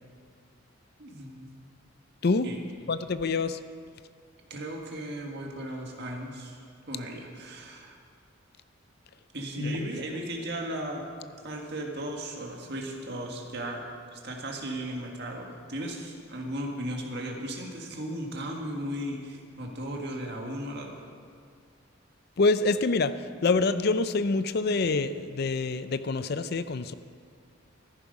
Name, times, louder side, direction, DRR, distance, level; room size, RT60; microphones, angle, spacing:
voice 1, 1.0-1.6 2.4-2.6 4.5-6.6 6.9-8.0 9.3-11.1 11.4-13.8 14.1-21.0, right 1 dB, 55° right, 1 dB, 1.8 m, -36 dB
voice 2, 2.9-3.6 9.6-9.9 22.4-23.1 23.4-26.9, left 3 dB, 50° left, 12 dB, 0.5 m, -26 dB
14.0 x 11.0 x 5.3 m, 2.1 s
head